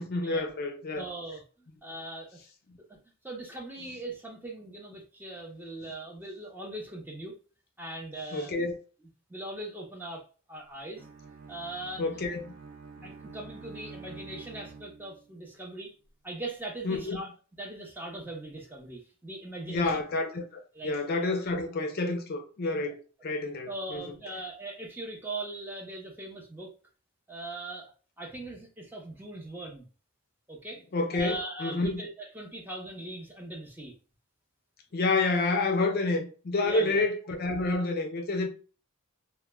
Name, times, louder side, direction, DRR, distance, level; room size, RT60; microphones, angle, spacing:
voice 1, 0.0-1.0 8.3-8.8 12.0-12.5 13.0-13.1 16.8-17.2 19.7-24.1 30.9-32.0 34.9-38.5, left 3 dB, 45° left, 0.4 m, -29 dB
voice 2, 0.9-2.4 2.9-3.0 3.2-7.4 7.8-8.5 9.3-10.2 10.5-11.0 11.5-12.0 13.0-15.9 16.2-17.3 17.6-20.0 20.7-20.9 23.7-26.7 27.3-27.9 28.2-29.9 30.5-30.8 31.1-33.9 36.6-37.0, right 2 dB, 10° right, 0.5 m, -40 dB
Bowed string instrument, 10.9-15.4, right 4 dB, 85° right, 0.5 m, -47 dB
2.0 x 2.0 x 3.2 m
head